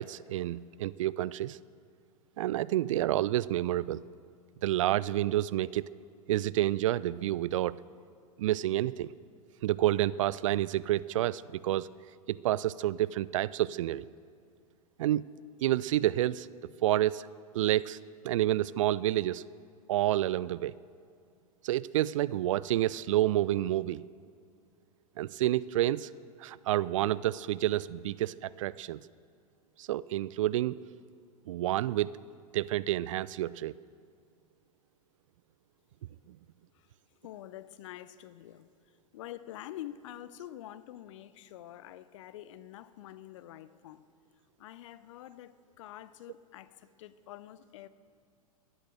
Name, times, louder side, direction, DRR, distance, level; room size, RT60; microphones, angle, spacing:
voice 1, 0.0-1.6 2.4-4.0 4.6-5.8 6.3-7.8 8.4-9.1 9.6-11.9 12.3-14.1 15.0-15.3 15.6-16.5 16.8-17.3 17.5-18.0 18.2-19.4 19.9-20.7 21.6-24.0 25.2-26.1 26.4-29.0 29.8-30.8 31.5-32.1 32.5-33.7 36.3-36.4, right 14 dB, 60° right, 0.4 m, -29 dB
voice 2, 37.2-44.0 44.6-47.9, left 13 dB, 55° left, 0.7 m, -47 dB
13.5 x 10.5 x 7.9 m
figure-of-eight pair, 95°, 19 cm